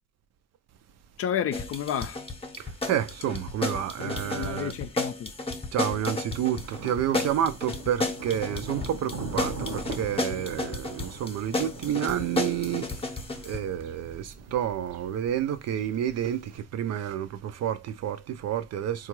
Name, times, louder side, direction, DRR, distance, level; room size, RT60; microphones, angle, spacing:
voice 1, 1.2-2.2 4.0-5.3, left 9 dB, 50° left, 0.4 m, -31 dB
sound 1, 1.5-13.6, left 2 dB, 20° left, 0.7 m, -33 dB
voice 2, 2.6-4.7 5.7-19.1, right 10 dB, 55° right, 0.5 m, -30 dB
Thunder, 6.6-16.6, right 2 dB, 75° right, 1.0 m, -41 dB
3.7 x 2.4 x 3.0 m
cardioid pair, 80°, 31 cm